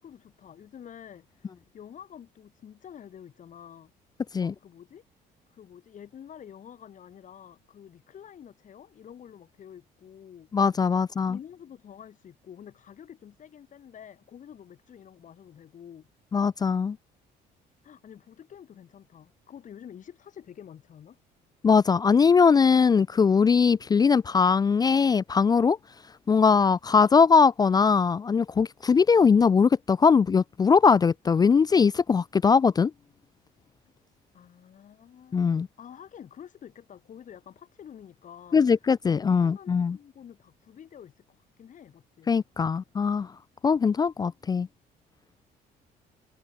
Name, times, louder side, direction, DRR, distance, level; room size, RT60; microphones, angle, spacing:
voice 1, 0.0-3.9 4.4-5.0 5.5-10.5 10.9-16.1 17.8-21.2 34.3-42.3, left 9 dB, 50° left, 4.7 m, -48 dB
voice 2, 10.5-11.4 16.3-17.0 21.6-25.8 26.3-32.9 35.3-35.7 38.5-40.0 42.3-43.3 43.6-44.7, left 5 dB, 25° left, 0.4 m, -21 dB
cardioid pair, 110°, 17 cm